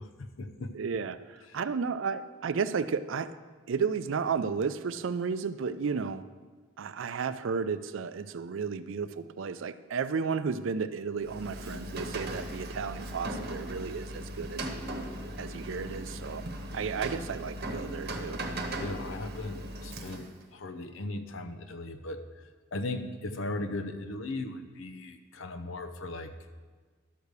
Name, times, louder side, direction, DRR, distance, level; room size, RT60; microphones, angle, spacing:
voice 1, 0.0-0.7 1.5-1.6 18.8-26.3, left 2 dB, 75° left, 8 dB, 0.7 m, -38 dB
voice 2, 0.7-3.3 3.7-6.2 6.8-14.6 15.4-16.4 16.7-18.4, right 5 dB, 70° right, 13 dB, 0.4 m, -33 dB
Rain, 11.2-20.4, right 1 dB, 50° right, 1.0 m, -38 dB
12.0 x 4.8 x 6.7 m, 1.4 s
head